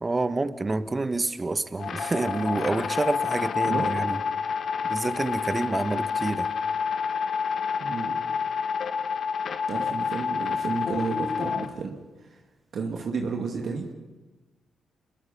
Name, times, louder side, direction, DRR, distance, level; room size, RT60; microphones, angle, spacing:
voice 1, 0.0-4.2 4.8-6.5, right 3 dB, 30° right, 13 dB, 1.4 m, -28 dB
sound 1, 1.8-11.7, left 6 dB, 60° left, 1.6 m, -28 dB
voice 2, 3.6-4.0 7.8-8.2 9.7-12.0 12.2-12.4 12.7-13.9, right 4 dB, 60° right, 2 dB, 2.3 m, -31 dB
27.5 x 22.0 x 5.8 m, 1.2 s
hypercardioid pair, 45°, 0 cm